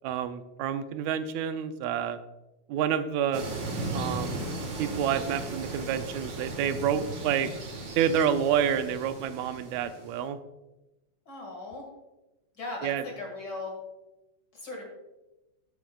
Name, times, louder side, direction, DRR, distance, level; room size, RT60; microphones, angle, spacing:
voice 1, 0.0-2.2 2.7-3.4 3.9-4.5 4.8-7.5 8.0-10.4 12.8-13.0, right 8 dB, 80° right, 10 dB, 1.8 m, -28 dB
sound 1, 3.3-10.3, right 2 dB, 45° right, 1.9 m, -36 dB
voice 2, 11.3-11.9 12.5-13.8 14.5-14.8, left 2 dB, 40° left, 0 dB, 2.2 m, -38 dB
12.0 x 9.2 x 2.3 m, 1.0 s
omnidirectional pair, 3.4 m